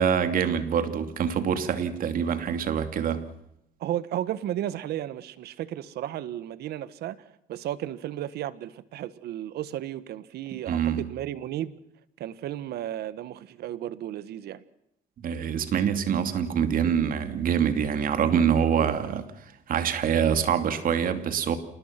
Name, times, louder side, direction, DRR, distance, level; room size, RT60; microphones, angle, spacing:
voice 1, 0.0-3.2 10.7-11.1 15.2-19.3 19.7-21.6, right 8 dB, 55° right, 2.7 m, -25 dB
voice 2, 3.8-11.7 12.2-14.6, right 12 dB, 70° right, 1.5 m, -34 dB
28.0 x 20.0 x 6.0 m
cardioid pair, 110°, 17 cm